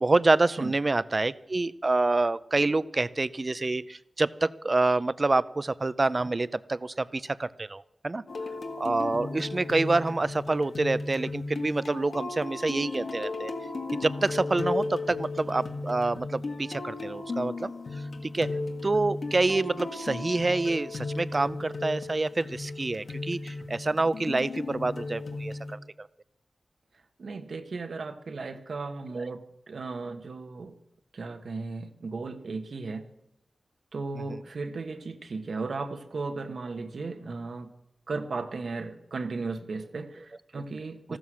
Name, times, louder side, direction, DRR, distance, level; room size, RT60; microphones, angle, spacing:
voice 1, 0.0-8.2 8.8-13.5 13.9-18.5 18.8-26.1 29.2-29.3 34.3-34.4 41.1-41.2, right 2 dB, 35° right, 17 dB, 0.5 m, -27 dB
sound 1, 8.3-25.8, left 3 dB, 70° left, 1.7 m, -35 dB
voice 2, 27.2-30.8 31.1-33.1 33.9-37.7 38.1-41.2, right 3 dB, 75° right, 6 dB, 1.3 m, -36 dB
14.5 x 13.0 x 6.2 m, 0.84 s
wide cardioid pair, 105°, 0 cm